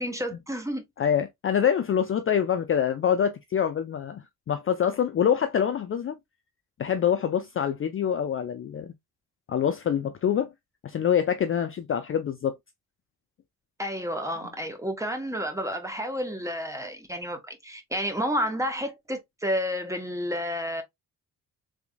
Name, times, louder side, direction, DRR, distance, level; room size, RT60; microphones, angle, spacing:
voice 1, 0.0-0.9 13.8-20.8, equal, 10° right, 1.1 m, -30 dB
voice 2, 1.0-6.2 6.8-8.9 9.5-10.5 10.8-12.5, left 8 dB, 35° left, 0.4 m, -25 dB
3.6 x 3.4 x 2.2 m
cardioid pair, 90°, 38 cm